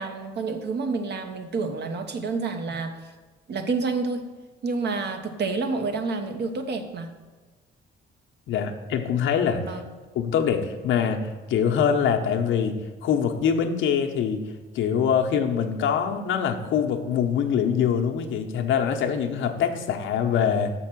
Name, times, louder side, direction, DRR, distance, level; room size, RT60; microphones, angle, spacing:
voice 1, 0.0-3.0 3.5-4.3 4.6-7.1 9.7-9.9, right 4 dB, 55° right, 7 dB, 1.0 m, -29 dB
voice 2, 8.5-9.8 10.1-14.5 14.7-20.7, left 7 dB, 80° left, 4 dB, 0.9 m, -24 dB
6.4 x 6.0 x 6.1 m, 1.3 s
cardioid pair, 90°, 20 cm